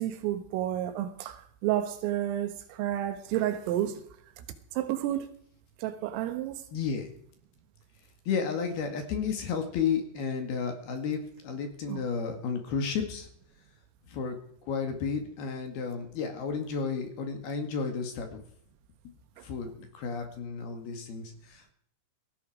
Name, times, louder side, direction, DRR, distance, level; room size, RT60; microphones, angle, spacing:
voice 1, 0.0-4.0 4.8-5.3 5.8-6.6 11.9-12.0 19.4-19.5, right 12 dB, 85° right, 4.0 m, -31 dB
voice 2, 6.7-7.1 8.3-13.3 14.1-14.4 14.7-18.4 19.4-21.7, left 6 dB, 60° left, 3.6 m, -32 dB
18.0 x 14.5 x 5.0 m
omnidirectional pair, 5.8 m